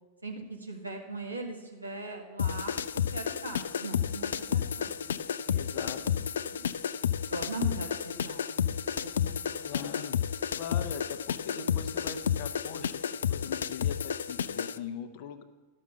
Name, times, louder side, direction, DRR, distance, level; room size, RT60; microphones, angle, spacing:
voice 1, 0.2-6.1 6.4-6.7 7.3-9.8, right 3 dB, 85° right, 1 dB, 1.8 m, -41 dB
sound 1, 2.4-14.8, left 8 dB, 65° left, 0.3 m, -31 dB
voice 2, 5.5-6.3 9.6-10.2 10.5-15.4, left 7 dB, 50° left, 9 dB, 0.9 m, -41 dB
12.5 x 6.5 x 6.8 m, 1.3 s
figure-of-eight pair, 90°, 0 cm